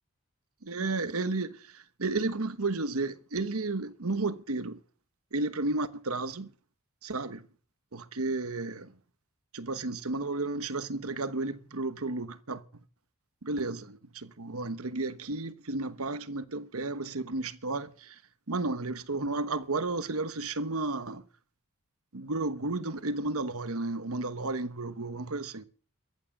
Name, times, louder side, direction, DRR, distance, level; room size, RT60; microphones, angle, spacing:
voice 1, 0.6-4.8 5.3-6.5 7.0-7.4 7.9-8.9 9.5-12.6 13.4-18.2 18.5-21.2 22.1-25.6, right 3 dB, 65° right, 1.1 m, -33 dB
14.0 x 9.4 x 7.5 m
head